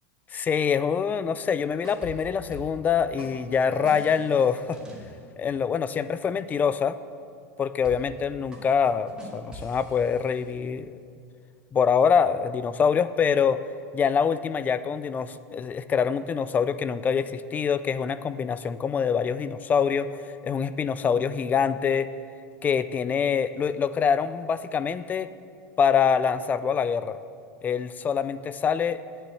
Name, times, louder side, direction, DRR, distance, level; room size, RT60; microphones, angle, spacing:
voice 1, 0.3-4.8 5.4-7.0 7.6-10.9 11.7-13.6 13.9-22.1 22.6-25.3 25.8-27.2 27.6-29.0, left 6 dB, 20° left, 14 dB, 0.4 m, -25 dB
sound 1, 1.8-2.9 3.2-5.2 7.8-8.2 8.5-10.5, equal, 10° right, 2.3 m, -44 dB
10.0 x 9.0 x 7.7 m, 2.3 s
supercardioid pair, 140°, 8 cm